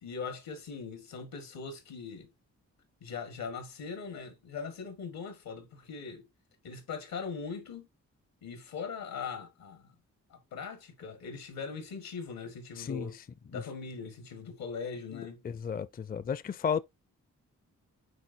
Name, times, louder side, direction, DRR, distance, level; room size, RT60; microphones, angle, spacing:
voice 1, 0.0-2.3 3.0-6.3 6.6-7.9 8.4-9.9 10.3-13.2 13.5-15.4, left 5 dB, 90° left, 1.9 m, -40 dB
voice 2, 12.8-13.1 13.5-13.6 15.4-16.8, left 7 dB, 25° left, 0.4 m, -33 dB
9.2 x 3.9 x 2.7 m
supercardioid pair, 50°, 34 cm